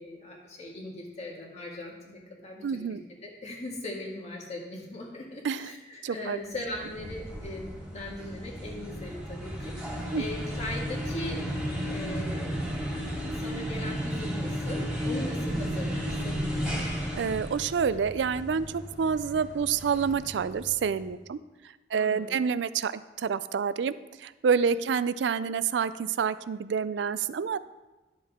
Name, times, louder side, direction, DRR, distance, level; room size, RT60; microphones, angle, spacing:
voice 1, 0.0-11.4 11.9-12.6 13.4-16.4 21.9-22.3 24.6-24.8, left 1 dB, 40° left, -2 dB, 1.9 m, -39 dB
voice 2, 2.6-3.0 5.4-5.7 6.0-6.4 10.1-10.2 17.2-21.4 21.9-27.6, right 6 dB, 85° right, 15 dB, 0.4 m, -28 dB
sound 1, 6.5-21.0, equal, 5° right, 2.3 m, -34 dB
11.0 x 7.3 x 3.6 m, 1.1 s
head